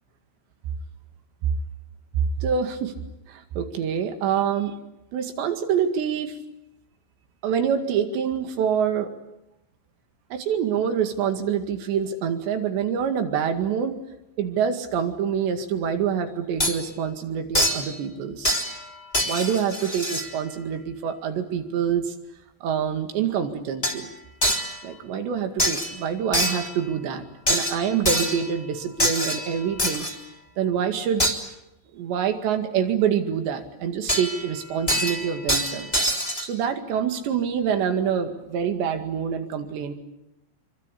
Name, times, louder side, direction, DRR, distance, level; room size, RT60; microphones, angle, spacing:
voice 1, 2.4-2.9 3.3-4.7 5.1-6.4 7.4-9.1 10.3-13.9 14.4-18.6 19.2-22.1 22.6-24.1 24.8-30.1 30.6-31.3 31.9-36.0 36.4-39.9, right 8 dB, 85° right, 6 dB, 4.4 m, -26 dB
sound 1, 16.6-16.8 17.5-17.9 18.4-18.9 19.1-20.3 23.8-24.0 24.4-24.8 25.6-26.0 26.3-26.8 27.5-28.5 29.0-30.2 31.2-31.4 34.1-34.5 34.9-36.5, equal, 10° left, 2.3 m, -25 dB
26.0 x 24.5 x 8.4 m, 0.91 s
omnidirectional pair, 4.9 m